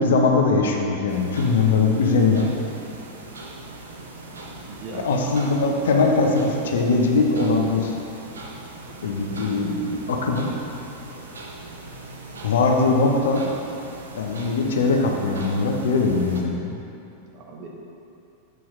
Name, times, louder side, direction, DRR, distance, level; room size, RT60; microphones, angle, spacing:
voice 1, 0.0-2.5 4.9-8.0 9.0-10.5 12.4-13.4 14.2-16.8, left 3 dB, 60° left, 2 dB, 0.8 m, -21 dB
sound 1, 1.1-16.4, right 2 dB, 70° right, 0.9 m, -40 dB
voice 2, 4.7-5.3 17.2-17.7, right 3 dB, 40° right, -1 dB, 1.1 m, -38 dB
7.9 x 6.0 x 3.7 m, 2.7 s
figure-of-eight pair, 90°, 0 cm